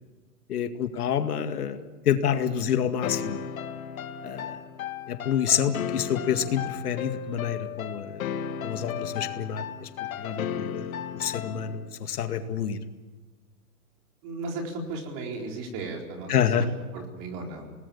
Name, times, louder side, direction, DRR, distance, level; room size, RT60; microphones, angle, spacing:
voice 1, 0.5-3.4 4.2-4.6 5.1-8.2 8.6-9.9 10.2-10.9 11.2-12.8 16.3-16.6, left 8 dB, 80° left, 8 dB, 2.2 m, -28 dB
sound 1, 3.0-11.9, left 8 dB, 60° left, 1.7 m, -35 dB
voice 2, 14.2-17.7, right 3 dB, 30° right, 2 dB, 4.4 m, -36 dB
29.5 x 19.5 x 7.1 m, 1.3 s
hypercardioid pair, 165°, 45 cm